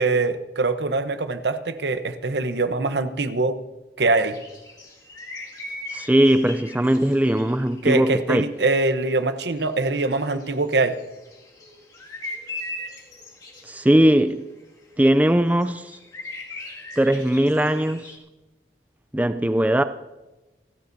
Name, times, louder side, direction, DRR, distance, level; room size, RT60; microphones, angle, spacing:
voice 1, 0.0-3.6 4.0-4.4 7.8-11.0, right 3 dB, 80° right, 1.0 m, -23 dB
sound 1, 4.2-8.6 8.9-9.0 9.2-9.3 9.6-18.2, left 2 dB, 25° left, 2.2 m, -39 dB
voice 2, 5.9-8.4 13.6-14.5 15.0-16.0 17.0-18.1 19.1-19.8, right 1 dB, 10° right, 0.4 m, -19 dB
29.0 x 12.5 x 2.7 m
head